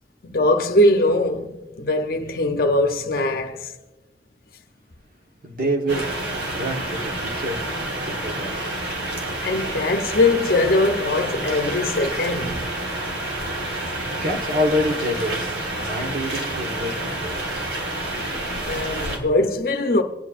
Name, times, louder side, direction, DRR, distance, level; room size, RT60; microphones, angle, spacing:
voice 1, 0.2-3.7 9.4-12.7 18.7-20.0, left 2 dB, 50° left, 0.7 m, -21 dB
voice 2, 5.4-7.7 8.1-8.8 14.2-16.9 17.2-17.7, equal, 50° right, 1.2 m, -27 dB
sound 1, 5.9-19.2, right 1 dB, 90° right, 2.4 m, -28 dB
26.0 x 9.2 x 2.5 m
head